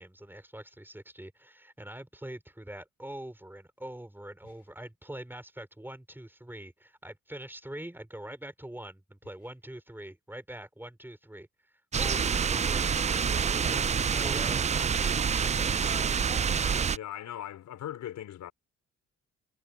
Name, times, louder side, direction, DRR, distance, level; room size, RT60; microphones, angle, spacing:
voice 1, 0.0-11.5 12.0-16.0, right 1 dB, 5° right, 5.2 m, -44 dB
sound 1, 11.9-17.0, right 6 dB, 25° right, 0.4 m, -27 dB
voice 2, 16.9-18.5, left 11 dB, 75° left, 4.6 m, -39 dB
cardioid pair, 90°, 30 cm